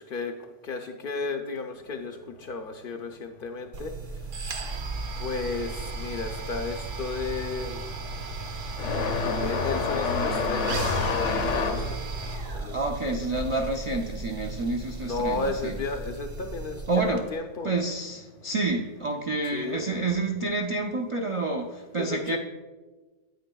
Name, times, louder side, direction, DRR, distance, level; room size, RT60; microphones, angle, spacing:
voice 1, 0.0-3.9 5.2-7.9 9.4-11.8 12.5-12.8 15.0-17.7 19.5-19.9 22.0-22.4, left 3 dB, 60° left, 5 dB, 0.6 m, -34 dB
sound 1, 3.7-17.2, right 3 dB, 85° right, 1.2 m, -35 dB
sound 2, 6.3-6.5 6.8-15.1 15.4-16.5 17.5-17.6 18.4-18.5 20.2-20.3, left 5 dB, 80° left, 1.0 m, -30 dB
voice 2, 12.7-15.8 16.9-17.3 17.6-22.4, right 2 dB, 50° right, 2 dB, 0.3 m, -29 dB
9.2 x 8.8 x 2.3 m, 1.3 s
omnidirectional pair, 1.3 m